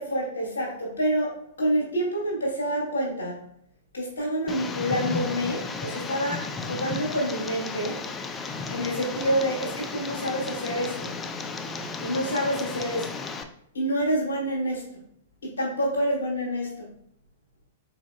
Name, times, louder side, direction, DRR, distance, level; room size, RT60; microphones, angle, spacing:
voice 1, 0.0-3.5 3.9-8.0 8.7-11.2 12.0-13.2 13.7-15.0 15.4-16.9, equal, 75° left, -2 dB, 1.7 m, -28 dB
Tick, 4.5-13.4, left 4 dB, 20° left, 0.4 m, -34 dB
4.7 x 3.9 x 2.2 m, 0.68 s
figure-of-eight pair, 105°, 0 cm